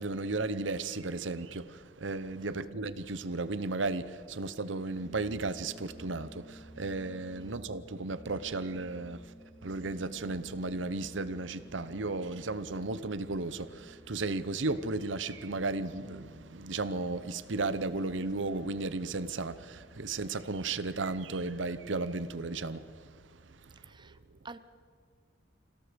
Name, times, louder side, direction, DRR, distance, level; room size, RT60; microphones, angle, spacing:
voice 1, 0.0-9.3 9.6-22.8, right 3 dB, 75° right, 0.9 m, -34 dB
voice 2, 2.4-2.7 7.3-7.6 23.8-24.2 24.4-24.6, right 3 dB, 25° right, 0.8 m, -49 dB
sound 1, 5.0-22.1, equal, 10° right, 2.9 m, -55 dB
28.0 x 17.5 x 5.2 m
head